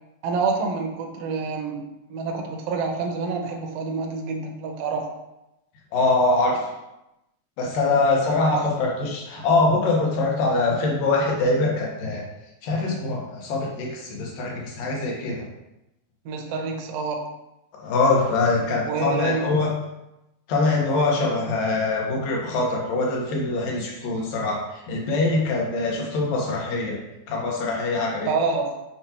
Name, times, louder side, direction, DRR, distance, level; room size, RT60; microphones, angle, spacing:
voice 1, 0.2-1.8 2.1-5.1 8.4-8.6 16.2-17.3 18.9-19.6 28.3-28.7, right 4 dB, 70° right, 2 dB, 1.6 m, -27 dB
voice 2, 5.9-6.7 7.6-12.2 12.6-15.5 17.8-19.7 20.5-27.0 27.3-28.3, left 3 dB, 85° left, -2 dB, 3.0 m, -23 dB
7.6 x 5.7 x 2.9 m, 0.92 s
omnidirectional pair, 3.8 m